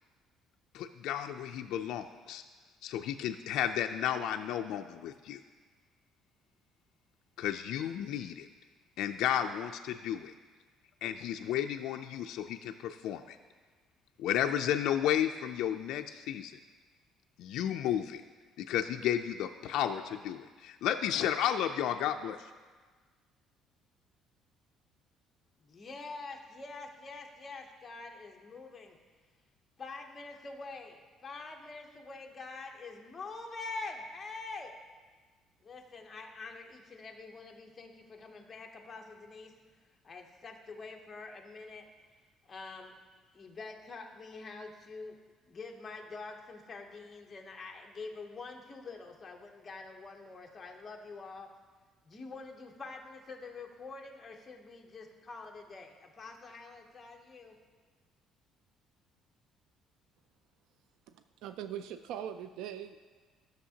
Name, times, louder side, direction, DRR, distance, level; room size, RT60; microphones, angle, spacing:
voice 1, 0.7-2.4 2.8-5.4 7.4-8.5 9.0-10.3 11.0-13.4 14.2-16.5 17.4-18.2 18.7-22.4, left 10 dB, 65° left, 5 dB, 0.3 m, -32 dB
voice 2, 25.6-29.0 29.8-34.7 35.6-39.5 40.0-41.8 42.5-42.9 43.3-45.2 45.5-51.5 52.0-57.6, left 3 dB, 20° left, 2 dB, 0.8 m, -45 dB
voice 3, 61.1-63.0, right 9 dB, 80° right, 10 dB, 0.3 m, -41 dB
14.0 x 6.4 x 2.8 m, 1.4 s
cardioid pair, 170°, 0 cm